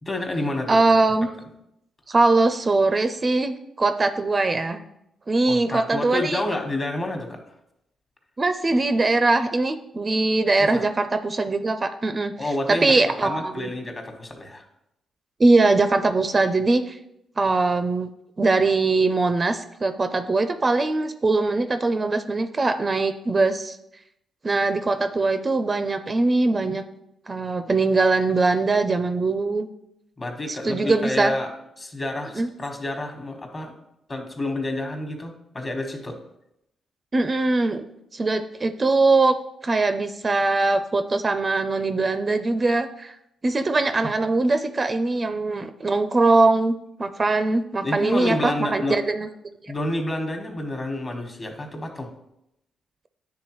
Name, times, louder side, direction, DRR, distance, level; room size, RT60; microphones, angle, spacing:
voice 1, 0.0-0.8 5.5-7.4 10.7-10.8 12.4-14.6 30.2-31.5 31.8-33.7 34.1-36.2 47.8-49.0 49.7-52.1, left 1 dB, 35° left, 4 dB, 1.2 m, -29 dB
voice 2, 0.7-1.3 2.1-4.9 5.3-6.4 8.4-12.3 12.7-13.7 15.4-17.0 17.4-18.1 18.4-23.8 24.4-26.8 27.3-29.7 30.5-31.3 32.4-32.5 37.1-37.8 38.1-39.4 39.6-43.1 43.4-49.3 49.6-49.7, right 3 dB, 35° right, 9 dB, 0.4 m, -21 dB
9.4 x 3.5 x 3.1 m, 0.82 s
cardioid pair, 65°, 0 cm